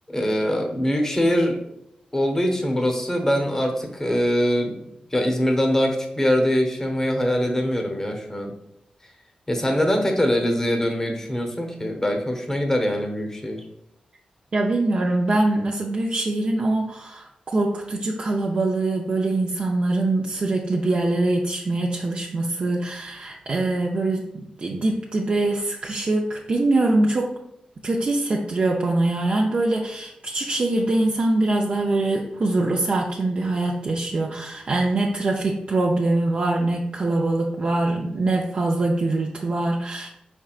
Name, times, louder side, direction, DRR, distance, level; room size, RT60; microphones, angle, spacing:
voice 1, 0.1-1.6 2.1-8.5 9.5-13.6, equal, 20° left, 3 dB, 0.9 m, -23 dB
voice 2, 14.5-27.3 27.8-40.1, right 2 dB, 50° right, -1 dB, 0.5 m, -23 dB
4.8 x 4.4 x 2.4 m, 0.79 s
cardioid pair, 70°, 3 cm